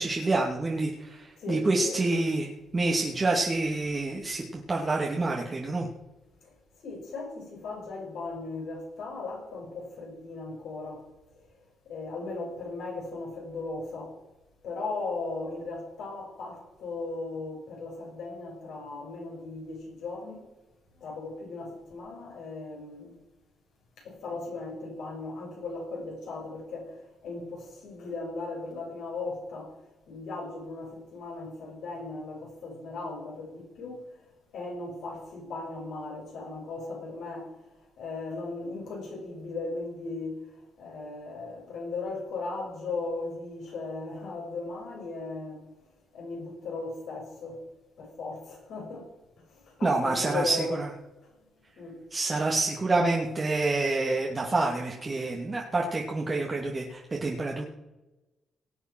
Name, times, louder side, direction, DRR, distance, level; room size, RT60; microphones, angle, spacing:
voice 1, 0.0-5.9 49.8-50.9 52.1-57.6, right 2 dB, 35° right, -1 dB, 2.4 m, -27 dB
voice 2, 1.4-2.0 6.4-6.5 6.8-11.1 11.8-14.2 14.6-20.5 20.9-23.1 24.0-29.8 30.1-34.0 34.5-37.5 38.0-40.4 40.8-45.7 46.1-47.6 48.0-49.1 49.5-50.8 51.8-52.0, left 3 dB, 75° left, -1 dB, 6.6 m, -37 dB
18.5 x 8.3 x 6.2 m, 1.1 s
supercardioid pair, 50°, 0 cm